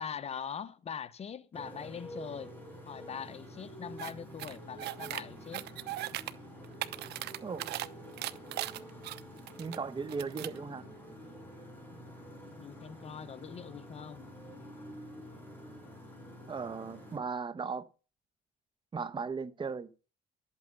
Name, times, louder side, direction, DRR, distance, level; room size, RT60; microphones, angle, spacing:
voice 1, 0.0-2.5 2.9-5.7 12.6-14.2, left 7 dB, 40° left, 0.9 m, -42 dB
Motorcycle, 1.5-17.2, equal, 10° left, 6.8 m, -48 dB
sound 1, 4.0-4.1 4.4-5.2 5.5-6.3 6.6-7.9 8.2-9.8 10.1-10.6, right 16 dB, 75° right, 0.9 m, -38 dB
voice 2, 9.6-10.8 16.5-17.9 18.9-19.9, right 5 dB, 30° right, 1.2 m, -37 dB
12.5 x 8.5 x 6.8 m
cardioid pair, 110°, 17 cm